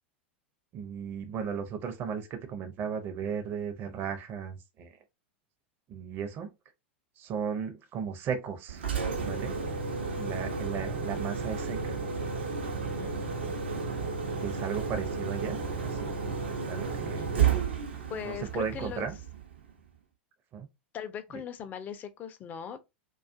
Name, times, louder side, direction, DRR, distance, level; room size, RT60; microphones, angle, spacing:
voice 1, 0.7-4.9 5.9-6.5 7.2-8.8 9.2-9.6 10.1-12.0 14.4-16.1 16.7-17.3 18.2-19.1 20.5-20.7, right 7 dB, 40° right, 0.6 m, -35 dB
Engine, 8.7-19.6, right 5 dB, 75° right, 0.7 m, -32 dB
voice 2, 13.0-13.6 17.2-17.3 18.1-19.1 20.9-22.8, left 8 dB, 30° left, 0.4 m, -40 dB
2.3 x 2.3 x 2.5 m
hypercardioid pair, 90°, 6 cm